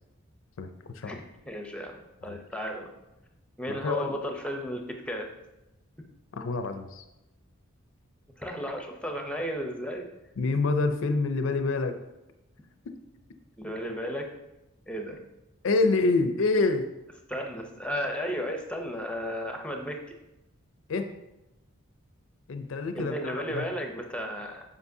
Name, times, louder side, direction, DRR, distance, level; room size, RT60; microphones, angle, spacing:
voice 1, 1.4-2.9 3.6-5.3 8.4-10.1 13.6-14.3 14.9-15.2 17.3-20.0 22.9-24.6, equal, 5° left, 3 dB, 0.6 m, -34 dB
voice 2, 3.7-4.1 6.3-7.0 10.4-12.0 12.9-13.0 15.6-16.9 20.9-21.1 22.5-23.7, left 3 dB, 70° left, 8 dB, 0.5 m, -27 dB
8.0 x 5.1 x 2.7 m, 0.96 s
head